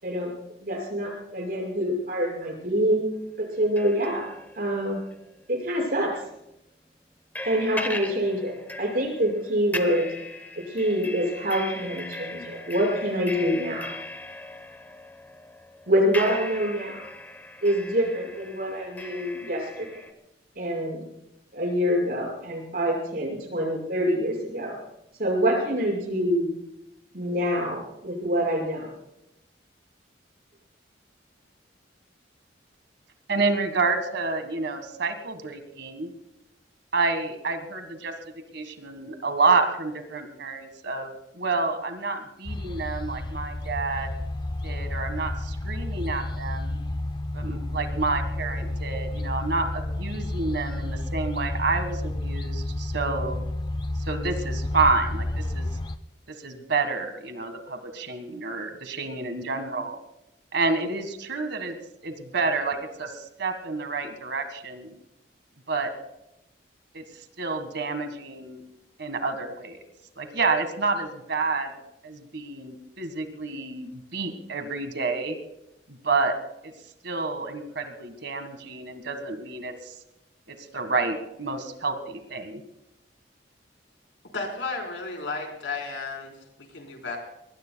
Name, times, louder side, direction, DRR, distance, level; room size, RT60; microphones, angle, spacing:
voice 1, 0.6-3.1 3.4-4.3 4.6-5.0 5.5-6.1 7.4-10.1 10.5-13.9 15.9-17.1 17.6-20.0 20.6-21.0 21.5-24.8 25.2-26.5 27.1-28.9, equal, 55° right, 0 dB, 6.4 m, -26 dB
sound 1, 3.5-5.6 6.0-6.2 7.3-20.1, left 2 dB, 10° left, 1.0 m, -38 dB
voice 2, 33.3-36.1 36.9-38.1 38.5-44.1 44.6-46.8 47.3-53.4 54.1-55.7 56.4-60.0 60.5-61.8 62.0-65.0 65.7-65.9 66.9-67.0 67.4-68.6 69.0-69.8 70.2-71.7 72.0-75.4 76.0-76.4 76.6-76.7 77.0-79.9 80.5-82.6, right 3 dB, 70° right, 7 dB, 1.8 m, -29 dB
sound 2, 42.4-56.0, left 1 dB, 25° left, 0.6 m, -31 dB
voice 3, 84.3-87.2, left 3 dB, 85° left, 1 dB, 4.3 m, -33 dB
24.5 x 20.0 x 2.3 m, 0.84 s
head